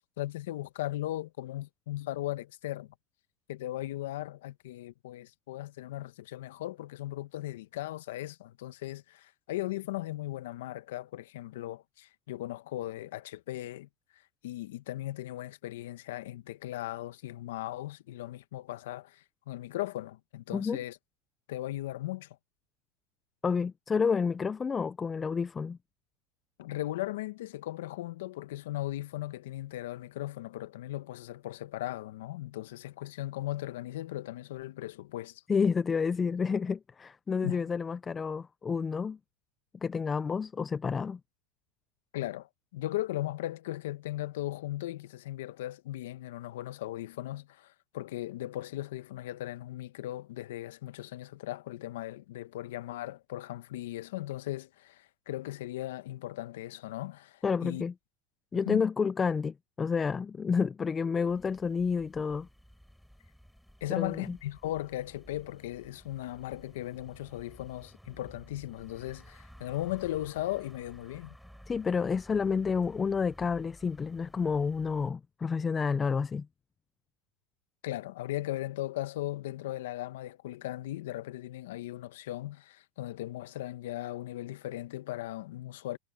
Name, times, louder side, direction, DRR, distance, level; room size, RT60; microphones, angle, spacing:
voice 1, 0.2-2.9 3.5-21.0 21.5-22.4 26.6-35.4 37.4-37.6 42.1-57.8 58.5-58.8 63.8-71.3 77.8-86.0, left 15 dB, 80° left, 1.3 m, -37 dB
voice 2, 23.4-25.8 35.5-39.2 39.8-41.2 57.4-57.9 58.5-62.5 64.0-64.3 71.7-76.5, left 5 dB, 20° left, 0.6 m, -30 dB
sound 1, 61.3-75.1, equal, ahead, 4.1 m, -55 dB
supercardioid pair, 115°, 0 cm